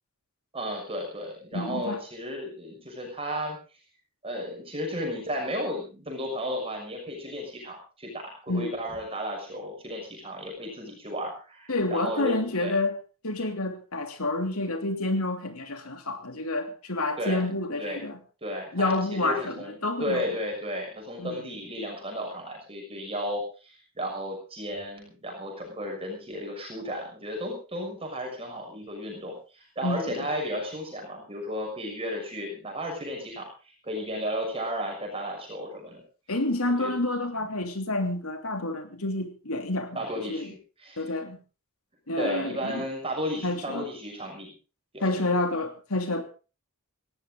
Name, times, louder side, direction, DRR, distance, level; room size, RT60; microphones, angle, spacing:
voice 1, 0.5-3.6 4.2-12.7 13.3-13.5 17.2-17.4 17.8-18.1 18.4-36.0 36.8-36.9 39.9-41.1 42.2-44.5 44.9-45.3, equal, 25° right, 1 dB, 6.1 m, -34 dB
voice 2, 1.5-2.0 8.5-8.8 11.7-12.9 13.2-18.2 18.7-20.2 21.2-21.4 29.8-30.1 36.3-40.0 40.3-40.5 41.0-41.4 42.1-42.8 43.4-43.9 45.0-46.2, left 2 dB, 85° left, 6 dB, 3.1 m, -29 dB
18.5 x 16.5 x 3.9 m, 0.35 s
head